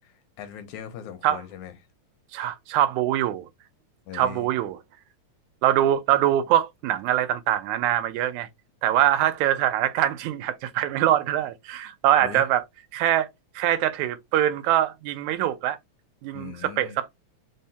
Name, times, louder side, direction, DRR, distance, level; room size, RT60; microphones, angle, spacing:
voice 1, 0.1-1.7 4.1-4.5 12.2-12.4 16.3-17.0, left 9 dB, 80° left, 2.1 m, -39 dB
voice 2, 2.3-3.5 4.1-4.8 5.6-8.5 8.8-12.6 12.9-13.3 13.6-15.8 16.2-17.1, right 12 dB, 85° right, 2.0 m, -23 dB
5.3 x 2.2 x 2.7 m
omnidirectional pair, 3.3 m